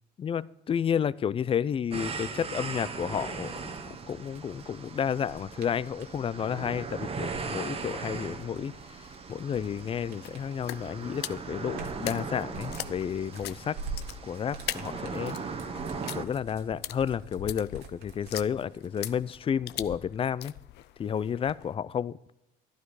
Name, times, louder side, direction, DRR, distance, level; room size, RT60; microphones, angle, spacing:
voice 1, 0.2-3.6 4.1-8.7 9.3-13.8 14.2-15.4 16.1-20.5 21.0-22.2, left 8 dB, 35° left, 19 dB, 0.4 m, -31 dB
sound 1, 1.9-16.3, right 5 dB, 35° right, 1.2 m, -38 dB
sound 2, 3.4-6.2 7.1-10.9 11.3-19.4, right 4 dB, 80° right, 2.0 m, -46 dB
sound 3, 8.7-21.7, left 15 dB, 80° left, 0.6 m, -43 dB
12.5 x 12.0 x 4.8 m, 0.86 s
cardioid pair, 110°, 17 cm